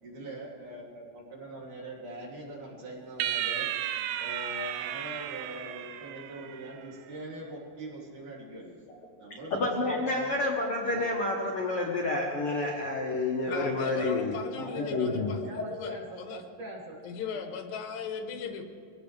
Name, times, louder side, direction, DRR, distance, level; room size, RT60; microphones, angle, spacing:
voice 1, 0.0-3.7 4.2-8.8 9.2-10.4 10.9-11.0 14.6-17.0 17.3-17.4, right 1 dB, 60° right, -4 dB, 4.3 m, -42 dB
sound 1, 3.2-6.8, right 11 dB, 90° right, 2.4 m, -34 dB
voice 2, 9.5-14.4 14.9-15.3, left 2 dB, 55° left, -1 dB, 1.7 m, -29 dB
voice 3, 13.5-16.4 17.0-18.6, left 6 dB, 80° left, 5 dB, 2.9 m, -38 dB
23.5 x 17.0 x 3.4 m, 2.2 s
omnidirectional pair, 4.1 m